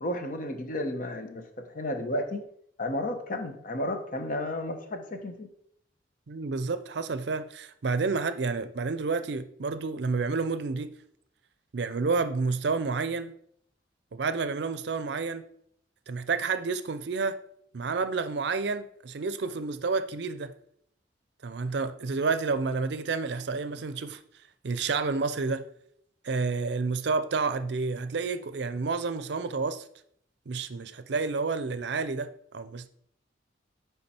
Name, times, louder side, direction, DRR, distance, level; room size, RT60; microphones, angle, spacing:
voice 1, 0.0-2.4 2.8-5.5, left 1 dB, 45° left, 0.9 m, -32 dB
voice 2, 6.3-10.9 11.7-13.3 14.1-15.4 16.1-17.4 17.7-20.5 21.4-24.2 24.6-25.6 26.2-29.8 30.5-32.9, right 4 dB, 65° right, 0.5 m, -30 dB
9.7 x 3.6 x 4.3 m
head